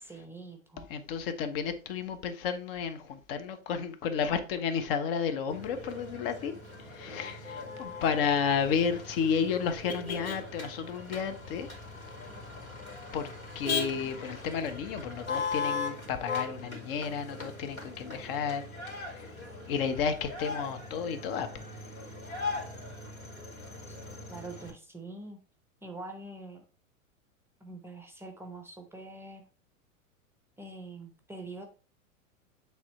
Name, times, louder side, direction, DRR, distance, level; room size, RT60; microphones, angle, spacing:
voice 1, 0.0-0.9 23.9-24.0 24.3-25.4 25.8-26.6 27.6-29.5 30.6-31.7, right 2 dB, 5° right, 0.9 m, -44 dB
voice 2, 0.9-6.5 6.8-11.7 13.1-13.3 13.5-19.3 19.7-22.0, left 6 dB, 40° left, 1.1 m, -32 dB
Motor vehicle (road), 5.5-24.7, left 4 dB, 85° left, 2.6 m, -39 dB
8.8 x 3.6 x 4.2 m
figure-of-eight pair, 90°, 41 cm